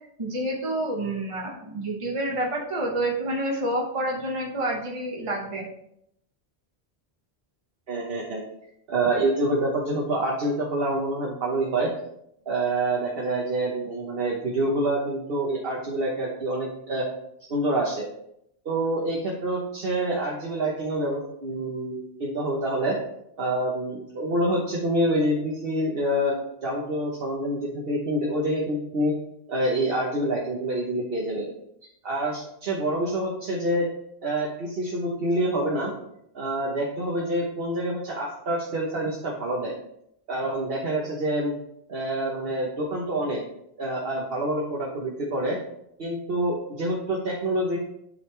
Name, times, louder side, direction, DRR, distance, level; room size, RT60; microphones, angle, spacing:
voice 1, 0.2-5.7, right 1 dB, 30° right, -2 dB, 1.1 m, -28 dB
voice 2, 7.9-8.4 8.9-11.9 12.5-17.1 17.5-18.1 18.6-23.0 23.4-26.4 26.6-29.1 29.5-31.5 32.0-33.9 34.2-35.9 36.3-39.7 40.3-41.5 41.9-43.4 43.8-45.6 46.0-47.8, right 1 dB, 60° right, -3 dB, 1.3 m, -27 dB
10.5 x 4.0 x 3.2 m, 0.76 s
omnidirectional pair, 1.1 m